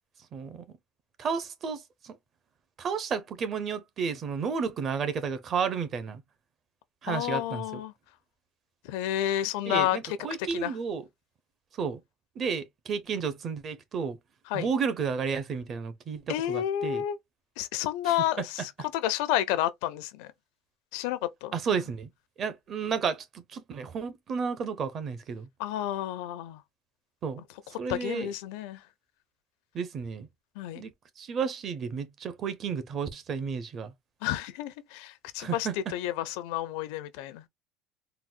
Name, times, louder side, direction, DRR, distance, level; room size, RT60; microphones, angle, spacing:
voice 1, 0.3-0.6 1.2-2.2 2.8-6.2 7.0-7.6 9.7-11.0 11.8-12.0 12.4-14.2 14.5-17.0 18.1-18.5 21.5-22.1 22.4-25.5 27.2-27.4 27.8-28.3 29.7-30.3 30.7-33.9 35.4-35.7, right 6 dB, 35° right, 0.7 m, -32 dB
voice 2, 7.1-7.9 8.8-10.0 10.4-10.7 14.5-14.7 16.3-17.2 17.6-20.3 20.9-21.5 25.6-26.6 27.9-28.8 30.6-30.8 34.2-37.5, left 12 dB, 90° left, 0.6 m, -30 dB
4.0 x 2.1 x 2.5 m
cardioid pair, 150°, 0 cm